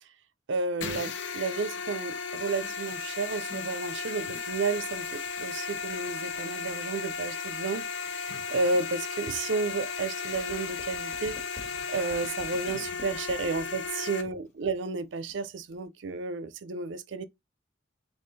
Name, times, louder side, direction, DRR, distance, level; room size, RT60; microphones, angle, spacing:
voice 1, 0.5-7.8 8.1-11.4 11.9-17.2, right 3 dB, 90° right, 0.5 m, -32 dB
sound 1, 0.8-14.2, left 5 dB, 85° left, 0.7 m, -35 dB
sound 2, 3.9-15.9, left 1 dB, 40° left, 1.5 m, -52 dB
3.7 x 2.9 x 4.0 m
head